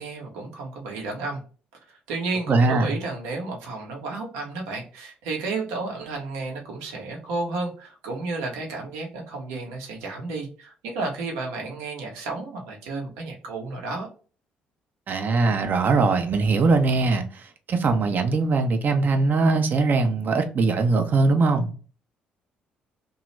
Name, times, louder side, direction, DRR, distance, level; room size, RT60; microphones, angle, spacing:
voice 1, 0.0-1.4 1.9-14.1, right 3 dB, 70° right, 0.9 m, -32 dB
voice 2, 2.5-2.9 15.1-21.7, right 3 dB, 45° right, 0.6 m, -21 dB
2.8 x 2.3 x 3.1 m
figure-of-eight pair, 45°, 5 cm